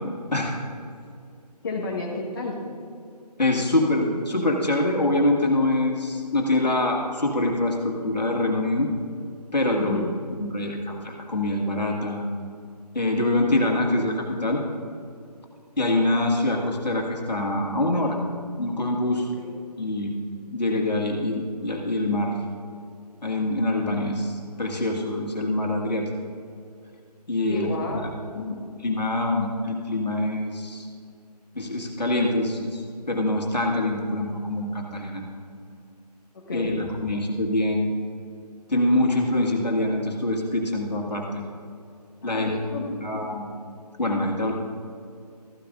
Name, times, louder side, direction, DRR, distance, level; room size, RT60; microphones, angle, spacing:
voice 1, 1.6-2.6 9.8-10.1 19.4-19.6 27.5-28.7 36.3-36.7 42.2-42.9, left 3 dB, 30° left, -1 dB, 1.7 m, -31 dB
voice 2, 3.4-8.9 9.5-10.0 10.4-12.2 12.9-14.6 15.8-18.2 18.6-19.3 19.8-20.1 20.4-22.4 23.2-26.1 27.3-27.7 28.0-28.1 28.8-30.9 31.5-35.2 36.5-37.9 38.7-41.4 42.2-42.5 43.0-43.5 44.0-44.5, left 1 dB, 80° left, 0 dB, 2.1 m, -25 dB
14.5 x 10.5 x 2.6 m, 2.4 s
figure-of-eight pair, 160°, 21 cm